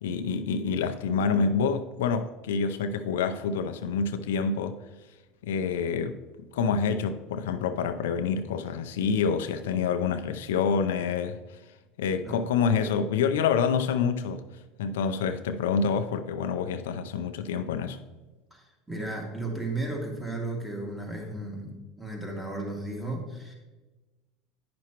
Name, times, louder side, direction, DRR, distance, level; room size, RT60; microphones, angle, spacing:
voice 1, 0.0-4.8 5.4-6.2 6.5-11.4 12.0-14.4 14.8-18.0, left 6 dB, 90° left, 0.5 m, -27 dB
voice 2, 18.5-23.5, right 2 dB, 5° right, 2.0 m, -34 dB
9.4 x 5.9 x 2.9 m
supercardioid pair, 105°, 0 cm